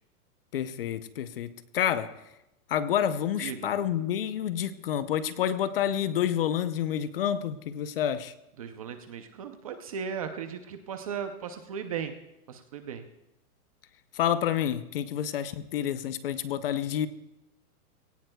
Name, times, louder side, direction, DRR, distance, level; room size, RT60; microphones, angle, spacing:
voice 1, 0.5-2.2 2.7-8.3 14.1-17.1, left 10 dB, 40° left, 13 dB, 0.6 m, -29 dB
voice 2, 3.4-3.7 8.6-12.1 12.5-13.0, right 7 dB, 25° right, 8 dB, 0.5 m, -36 dB
22.0 x 17.5 x 2.2 m, 0.91 s
hypercardioid pair, 160°, 46 cm